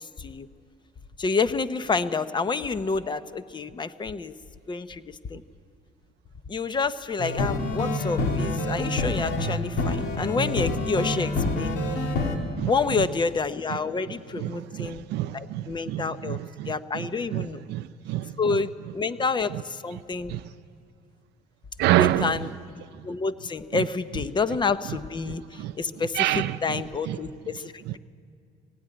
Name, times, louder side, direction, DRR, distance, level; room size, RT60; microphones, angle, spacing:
voice 1, 1.2-4.3 4.7-5.4 6.5-11.7 12.7-15.1 15.3-16.4 16.7-17.6 18.4-20.4 21.9-22.5 23.0-28.0, left 4 dB, 25° left, 0.8 m, -28 dB
sound 1, 7.2-12.4, left 2 dB, 75° left, 2.6 m, -27 dB
voice 2, 14.4-18.3 20.3-20.4 21.8-22.4 25.6-25.7 26.2-27.2, right 14 dB, 80° right, 0.6 m, -27 dB
19.0 x 16.0 x 9.8 m
cardioid pair, 110°, 17 cm